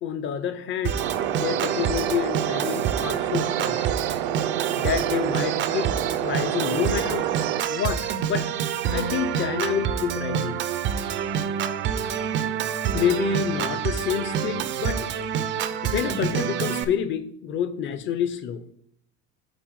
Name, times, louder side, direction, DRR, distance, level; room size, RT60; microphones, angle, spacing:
voice 1, 0.0-1.0 1.3-3.8 4.8-5.9 6.2-7.3 7.7-8.5 8.9-10.6 12.9-15.0 15.8-18.6, left 8 dB, 35° left, 11 dB, 0.6 m, -28 dB
Organ, 0.8-16.8, right 8 dB, 35° right, 0.4 m, -27 dB
sound 1, 1.0-7.6, right 11 dB, 85° right, 0.6 m, -28 dB
8.1 x 4.0 x 4.6 m, 0.68 s
cardioid pair, 160°, 35 cm